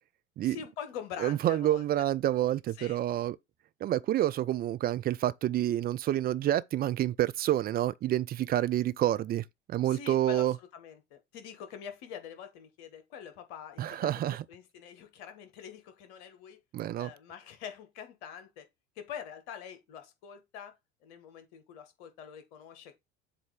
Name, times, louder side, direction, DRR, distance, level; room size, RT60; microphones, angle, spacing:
voice 1, 0.4-1.8 2.8-3.0 9.8-16.6 17.0-18.7 18.9-20.7 21.0-22.9, left 8 dB, 60° left, 1.4 m, -45 dB
voice 2, 1.2-3.4 3.8-10.5 13.8-14.4 16.7-17.1, right 13 dB, 30° right, 0.4 m, -28 dB
7.5 x 2.7 x 4.9 m
figure-of-eight pair, 65°, 34 cm